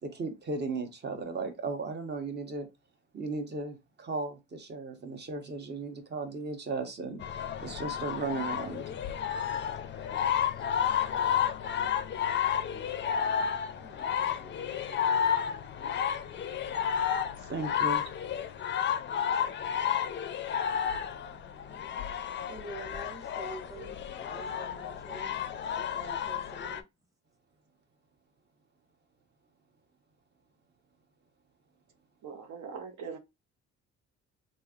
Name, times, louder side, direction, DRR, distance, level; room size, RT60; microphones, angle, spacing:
voice 1, 0.0-2.7 3.1-8.9 17.5-18.0, right 3 dB, 35° right, 0.9 m, -36 dB
sound 1, 7.2-26.8, left 8 dB, 40° left, 0.4 m, -31 dB
voice 2, 9.6-12.1 12.6-13.1 13.8-15.7 22.5-25.3 25.7-26.8, right 2 dB, 10° right, 1.0 m, -49 dB
voice 3, 32.2-33.2, right 6 dB, 70° right, 0.7 m, -41 dB
3.2 x 2.6 x 2.3 m
cardioid pair, 90°, 30 cm